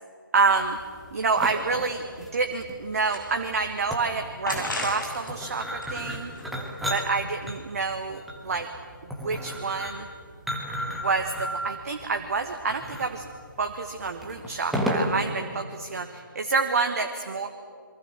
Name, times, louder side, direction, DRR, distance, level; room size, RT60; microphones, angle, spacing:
voice 1, 0.3-0.8 1.1-6.3 6.9-8.7 9.0-10.1 10.9-13.2 13.6-17.5, right 4 dB, 45° right, 6 dB, 1.4 m, -28 dB
sound 1, 0.6-15.3, equal, ahead, 1.7 m, -34 dB
sound 2, 2.8-3.7 4.5-5.3 5.7-6.9, left 1 dB, 65° left, 7.9 m, -35 dB
28.5 x 23.0 x 6.4 m, 2.3 s
figure-of-eight pair, 145°, 11 cm